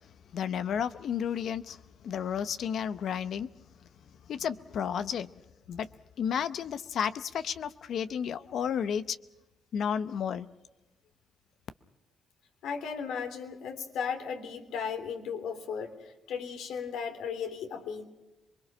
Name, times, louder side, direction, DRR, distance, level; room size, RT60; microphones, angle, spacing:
voice 1, 0.3-3.5 4.3-5.3 5.7-5.9 6.2-9.2 9.7-10.5, left 8 dB, 65° left, 0.7 m, -32 dB
voice 2, 12.6-18.0, left 6 dB, 85° left, 3.3 m, -36 dB
27.0 x 21.5 x 6.2 m
cardioid pair, 90°, 0 cm